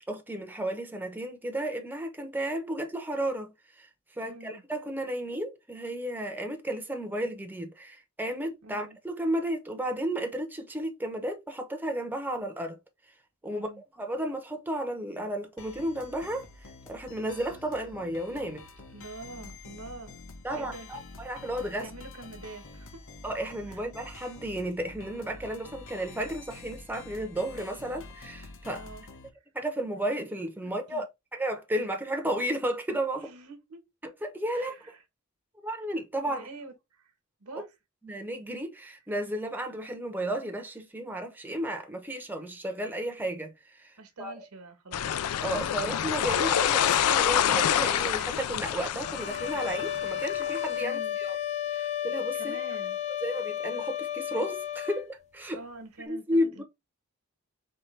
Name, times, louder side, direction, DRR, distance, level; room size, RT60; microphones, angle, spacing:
voice 1, 0.1-3.9 4.2-12.8 13.4-13.7 14.0-16.5 16.9-18.6 20.4-21.9 23.2-28.8 29.5-31.1 31.3-33.2 34.0-34.7 35.6-36.5 38.0-44.4 45.4-51.4 51.7-52.6 53.2-55.6 56.1-56.6, right 1 dB, 10° right, 0.7 m, -33 dB
voice 2, 4.2-4.6 8.6-9.0 13.4-13.8 18.9-20.1 20.5-20.9 21.7-23.0 23.7-23.8 28.7-29.0 30.6-31.0 33.1-33.8 34.5-35.0 36.2-37.1 37.4-37.7 44.0-45.1 50.7-51.4 51.7-51.9 52.3-53.0 55.5-56.6, right 2 dB, 75° right, 1.1 m, -46 dB
sound 1, 15.6-29.3, left 3 dB, 60° left, 1.0 m, -47 dB
sound 2, 44.9-50.7, left 9 dB, 80° left, 0.4 m, -27 dB
sound 3, 49.0-55.1, left 11 dB, 30° left, 0.5 m, -33 dB
4.5 x 3.3 x 3.2 m
head